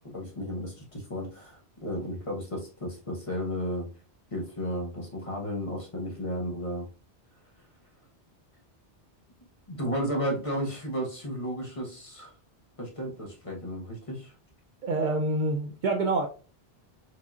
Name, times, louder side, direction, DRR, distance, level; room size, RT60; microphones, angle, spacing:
voice 1, 0.0-3.9 4.3-6.9 9.7-12.3 12.8-14.3, equal, 35° left, 0 dB, 1.0 m, -33 dB
voice 2, 14.8-16.3, right 2 dB, 55° right, 3 dB, 0.6 m, -26 dB
4.7 x 2.7 x 2.4 m, 0.35 s
omnidirectional pair, 1.1 m